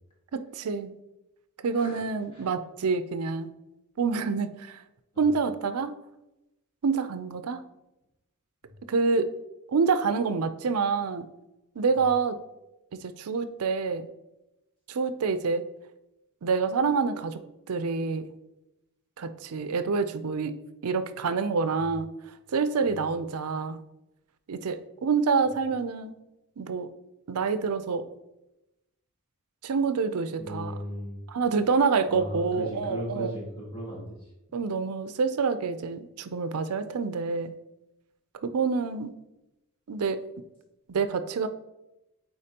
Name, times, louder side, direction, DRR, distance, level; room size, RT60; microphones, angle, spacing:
voice 1, 0.3-0.9 1.6-3.5 4.0-4.8 5.2-5.9 6.8-7.6 8.9-9.3 9.7-11.3 11.8-12.4 12.9-14.1 14.9-15.6 16.4-17.4 17.7-18.2 19.2-20.6 20.8-22.1 22.5-23.8 24.5-26.1 26.6-26.9 27.3-28.1 29.6-30.7 31.3-33.4 34.5-37.5 38.4-39.1 39.9-40.2 40.9-41.5, right 5 dB, 80° right, 11 dB, 0.5 m, -27 dB
voice 2, 30.4-31.2 32.1-34.1, equal, 25° left, -4 dB, 1.9 m, -37 dB
8.5 x 4.4 x 2.9 m, 0.94 s
head